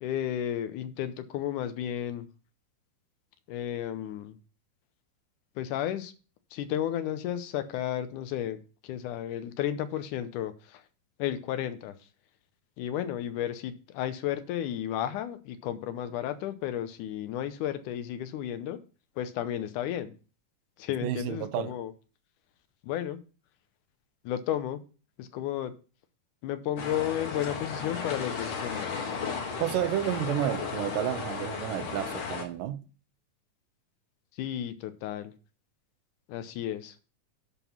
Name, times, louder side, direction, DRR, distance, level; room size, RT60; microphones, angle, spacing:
voice 1, 0.0-2.3 3.5-4.4 5.6-6.1 6.5-10.8 11.2-12.0 12.8-18.8 19.2-20.1 20.8-21.9 22.8-23.2 24.2-24.8 25.2-25.7 26.4-29.1 34.3-35.3 36.3-37.0, left 11 dB, 75° left, 2.2 m, -33 dB
voice 2, 21.0-21.8 29.6-32.8, right 12 dB, 90° right, 2.3 m, -31 dB
sound 1, 26.8-32.4, left 5 dB, 55° left, 2.4 m, -35 dB
11.0 x 3.8 x 6.0 m
omnidirectional pair, 3.8 m